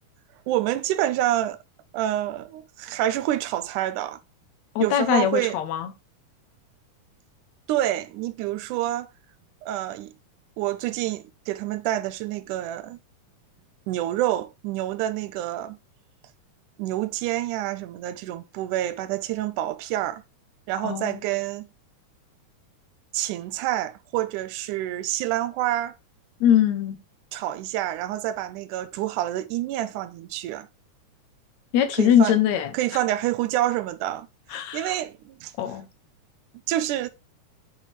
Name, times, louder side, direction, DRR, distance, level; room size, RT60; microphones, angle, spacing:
voice 1, 0.5-1.6 1.9-4.2 4.8-5.6 7.7-9.1 9.6-10.1 10.6-13.0 13.9-15.8 16.8-20.2 20.7-21.7 23.1-26.0 27.3-30.7 32.0-32.4 32.7-34.3 34.5-35.5 36.7-37.1, right 13 dB, 90° right, 2.1 m, -27 dB
voice 2, 4.8-5.9 20.8-21.2 26.4-27.0 31.7-32.7 34.5-35.0 35.6-35.9, left 10 dB, 70° left, 2.0 m, -22 dB
7.3 x 4.6 x 4.1 m
omnidirectional pair, 3.6 m